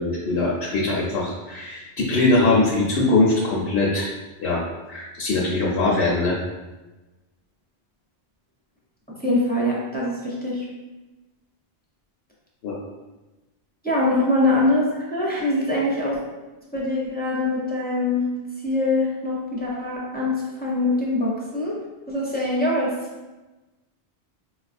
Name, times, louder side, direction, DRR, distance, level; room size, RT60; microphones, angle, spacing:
voice 1, 0.0-4.1 4.4-4.6 4.9-6.4 12.6-12.8, left 2 dB, 85° left, -4 dB, 0.9 m, -21 dB
voice 2, 9.2-10.6 13.8-16.2 16.7-18.2 18.6-21.7 22.1-22.9, left 2 dB, 10° left, -6 dB, 0.5 m, -23 dB
4.3 x 2.3 x 2.5 m, 1.1 s
omnidirectional pair, 1.0 m